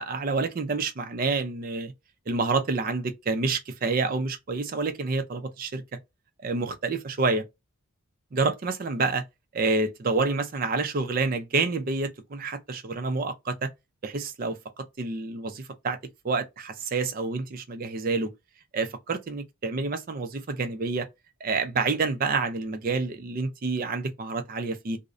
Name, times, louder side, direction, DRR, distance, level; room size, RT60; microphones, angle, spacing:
voice 1, 0.0-1.9 2.3-5.8 6.4-7.4 8.3-9.2 9.5-13.7 14.0-16.0 16.2-18.3 18.7-21.1 21.4-25.0, right 3 dB, 40° right, 0.4 m, -28 dB
2.5 x 2.0 x 2.4 m
head